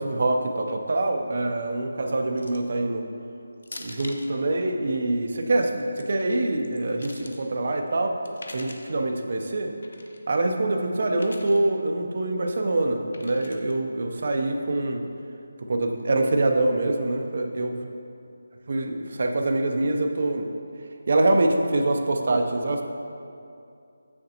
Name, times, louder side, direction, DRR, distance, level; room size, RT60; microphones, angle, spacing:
voice 1, 0.0-3.1 3.8-8.2 8.5-9.7 10.3-15.0 15.6-17.7 18.7-20.5 21.1-22.8, right 2 dB, 45° right, 4 dB, 0.6 m, -25 dB
sound 1, 2.4-2.7 3.6-4.3 5.7-6.0 6.6-7.4 8.2-8.9 9.8-10.2 11.1-11.6 13.1-13.7, left 2 dB, 70° left, 0.6 m, -43 dB
7.4 x 6.5 x 2.8 m, 2.5 s
figure-of-eight pair, 175°, 0 cm